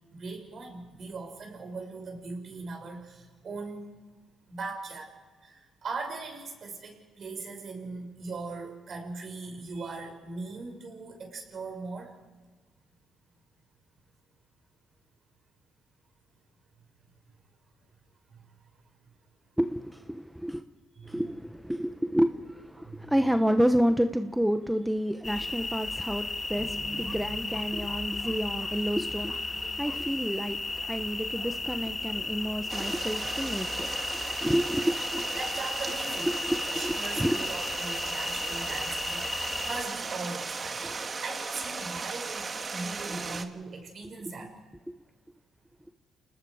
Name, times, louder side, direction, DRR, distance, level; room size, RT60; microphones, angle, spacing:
voice 1, 0.1-3.8 4.5-5.1 5.4-12.1 18.3-18.4 21.0-21.2 22.9-23.1 35.4-36.3 36.7-40.8 41.2-44.5, right 3 dB, 50° right, 6.3 m, -39 dB
voice 2, 19.6-20.6 21.0-35.2 36.2-37.4 43.1-43.2 44.9-45.0, equal, 5° right, 0.9 m, -29 dB
sound 1, 25.2-39.8, left 3 dB, 25° left, 1.8 m, -34 dB
sound 2, 26.6-31.2, right 2 dB, 20° right, 1.6 m, -45 dB
Stream, 32.7-43.4, right 4 dB, 35° right, 1.5 m, -36 dB
29.5 x 20.0 x 4.9 m
cardioid pair, 90°, 0 cm